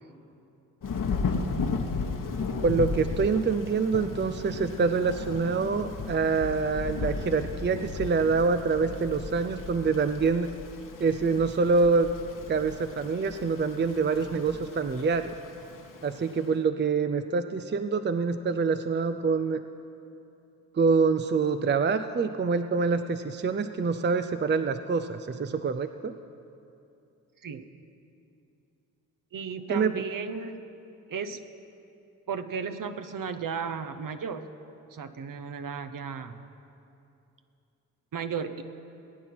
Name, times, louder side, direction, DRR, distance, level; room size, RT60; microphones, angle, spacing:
Thunder / Rain, 0.8-16.4, left 4 dB, 50° left, 1.4 m, -35 dB
voice 1, 2.6-10.5 11.0-12.1 12.5-15.3 16.0-19.6 20.8-26.1 29.7-29.9, right 4 dB, 25° right, 9 dB, 0.6 m, -26 dB
voice 2, 29.3-30.6 31.1-31.4 32.3-34.5 34.9-36.4 38.1-38.6, right 6 dB, 50° right, 9 dB, 1.1 m, -34 dB
19.0 x 9.3 x 6.0 m, 2.7 s
hypercardioid pair, 45°, 41 cm